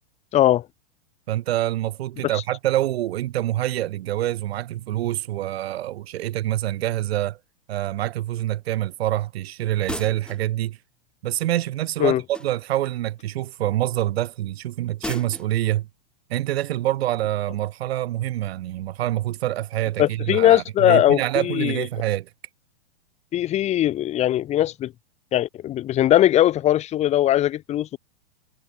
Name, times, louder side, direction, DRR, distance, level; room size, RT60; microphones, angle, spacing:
voice 1, 0.3-0.7 2.3-2.4 12.0-12.2 20.0-21.8 23.3-24.9 25.3-28.0, left 12 dB, 20° left, 1.5 m, -20 dB
voice 2, 1.3-7.4 7.7-10.8 11.2-15.9 16.3-22.3, right 14 dB, 60° right, 1.0 m, -26 dB
sound 1, 9.9-10.5 12.3-12.8 15.0-15.5, left 2 dB, 5° left, 1.0 m, -34 dB
hypercardioid pair, 155°, 34 cm